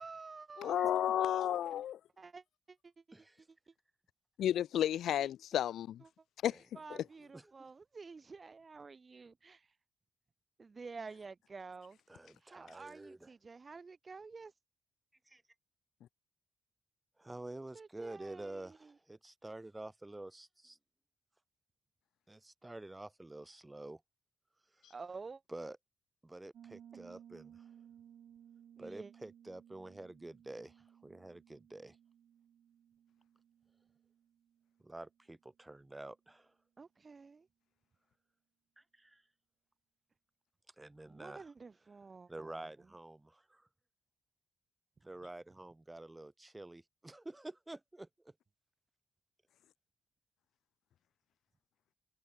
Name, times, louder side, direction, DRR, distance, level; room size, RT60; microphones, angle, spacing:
voice 1, 0.0-1.0 2.2-2.8 5.2-5.3 6.7-9.7 10.6-12.0 12.4-14.5 17.7-18.6 24.9-25.4 28.8-29.1 36.8-37.5 41.1-42.5, right 4 dB, 35° right, 1.3 m, -50 dB
voice 2, 0.6-2.0 4.4-6.0 6.4-6.6, left 11 dB, 80° left, 0.4 m, -32 dB
voice 3, 3.1-3.5 6.5-6.6 6.9-7.1 7.3-7.7 12.1-13.3 15.2-15.4 17.2-20.8 22.3-24.0 24.7-24.9 25.5-25.8 26.2-27.7 28.8-32.0 34.8-36.6 38.8-39.3 40.7-41.5 42.3-43.7 45.0-48.3, right 2 dB, 15° right, 6.4 m, -49 dB
Piano, 26.5-35.1, right 9 dB, 70° right, 2.6 m, -60 dB
cardioid pair, 95°, 0 cm